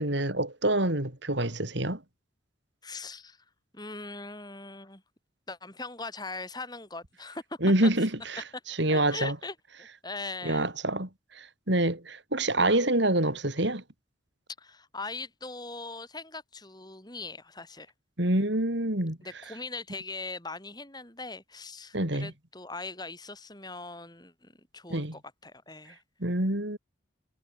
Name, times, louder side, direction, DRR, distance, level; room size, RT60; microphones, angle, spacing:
voice 1, 0.0-2.0 7.6-9.3 10.4-11.1 11.4-13.8 18.2-19.2 21.9-22.3 24.9-25.1 26.2-26.8, right 1 dB, 60° right, 3.8 m, -26 dB
voice 2, 2.8-3.4 3.7-5.0 5.5-8.1 8.5-8.6 8.9-10.7 14.6-17.9 18.3-18.5 19.2-26.0, left 3 dB, 20° left, 8.0 m, -41 dB
head